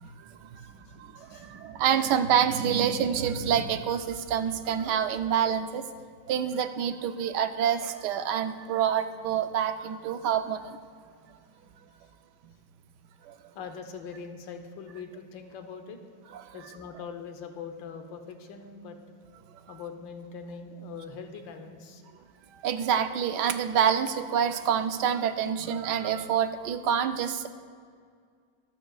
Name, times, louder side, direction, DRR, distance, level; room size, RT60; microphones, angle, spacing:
voice 1, 0.0-5.9 6.3-10.8 13.2-13.4 16.3-16.6 22.5-27.5, right 8 dB, 75° right, 9 dB, 1.2 m, -27 dB
voice 2, 0.6-1.5 13.5-16.0 16.5-19.0 19.7-22.0, left 5 dB, 85° left, 6 dB, 1.7 m, -42 dB
24.0 x 9.0 x 2.4 m, 2.1 s
omnidirectional pair, 2.0 m